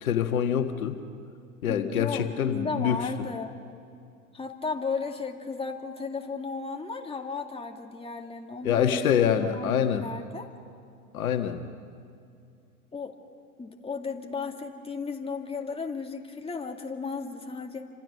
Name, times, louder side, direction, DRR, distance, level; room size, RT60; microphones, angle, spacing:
voice 1, 0.0-1.0 1.6-3.0 8.6-10.1 11.1-11.6, left 8 dB, 70° left, 6 dB, 1.7 m, -25 dB
voice 2, 1.7-3.5 4.3-10.5 12.9-13.1 13.6-17.9, left 4 dB, 15° left, 3 dB, 2.3 m, -35 dB
28.5 x 26.0 x 6.7 m, 2.4 s
hypercardioid pair, 90°, 44 cm